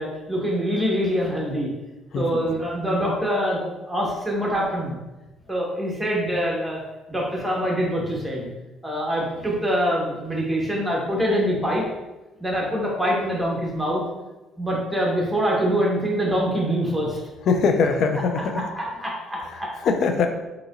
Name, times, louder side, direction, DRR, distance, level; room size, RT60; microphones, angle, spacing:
voice 1, 0.0-1.7 2.1-4.9 5.5-6.8 7.1-8.5 8.8-11.8 12.4-14.0 14.6-17.2 18.5-19.7, equal, 5° right, -3 dB, 1.3 m, -24 dB
voice 2, 2.1-2.5 17.5-18.7 19.4-20.3, left 5 dB, 60° left, 6 dB, 0.4 m, -22 dB
4.0 x 2.8 x 2.5 m, 1.1 s
hypercardioid pair, 55°, 0 cm